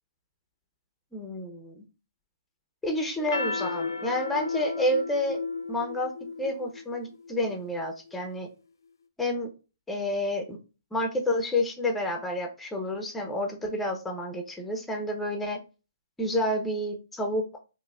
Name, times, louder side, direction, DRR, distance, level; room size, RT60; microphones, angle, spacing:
voice 1, 1.1-1.8 2.8-5.4 5.7-6.1 6.4-8.5 9.2-9.5 9.9-10.6 10.9-15.6 16.2-17.6, left 1 dB, 5° left, 3 dB, 0.5 m, -29 dB
sound 1, 3.2-7.9, left 4 dB, 80° left, 0.4 m, -34 dB
3.9 x 2.5 x 2.2 m, 0.32 s
hypercardioid pair, 145°, 2 cm